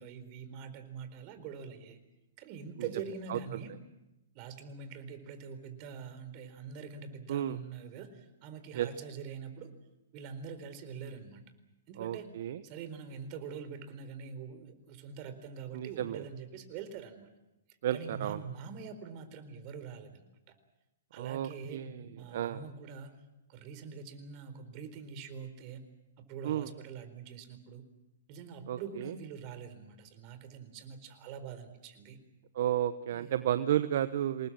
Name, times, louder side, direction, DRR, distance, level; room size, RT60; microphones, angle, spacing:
voice 1, 0.0-2.0 2.4-3.7 4.3-9.7 10.1-11.4 11.9-12.3 12.6-17.3 17.9-20.2 21.1-23.2 23.5-25.8 26.2-27.8 28.3-32.2 33.1-33.5, right 6 dB, 40° right, 10 dB, 4.2 m, -44 dB
voice 2, 12.0-12.6 15.7-16.3 17.8-18.4 21.2-22.6 26.4-26.7 28.7-29.1 32.5-34.5, right 11 dB, 60° right, 12 dB, 1.0 m, -32 dB
27.0 x 20.0 x 7.6 m, 0.97 s
hypercardioid pair, 120°, 0 cm